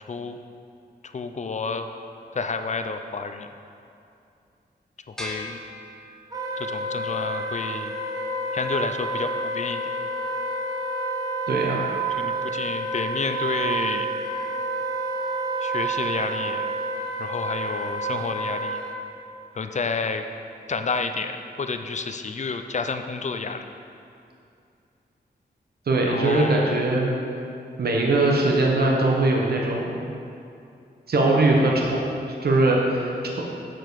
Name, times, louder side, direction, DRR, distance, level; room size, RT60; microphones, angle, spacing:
voice 1, 0.1-0.4 1.0-2.0 2.3-3.5 5.1-5.6 6.6-7.9 8.5-9.8 12.1-14.1 15.6-16.7 17.2-18.8 19.5-20.3 20.7-23.7 26.1-26.8, left 4 dB, 40° left, 7 dB, 0.4 m, -30 dB
sound 1, 5.2-6.7, left 1 dB, 5° left, 0.8 m, -38 dB
Wind instrument woodwind instrument, 6.3-19.0, right 2 dB, 20° right, 1.0 m, -29 dB
voice 2, 11.5-11.8 25.9-27.1 27.8-30.0 31.1-32.0 32.4-33.4, right 2 dB, 60° right, -1 dB, 1.0 m, -21 dB
7.7 x 6.8 x 4.7 m, 2.5 s
wide cardioid pair, 155°, 18 cm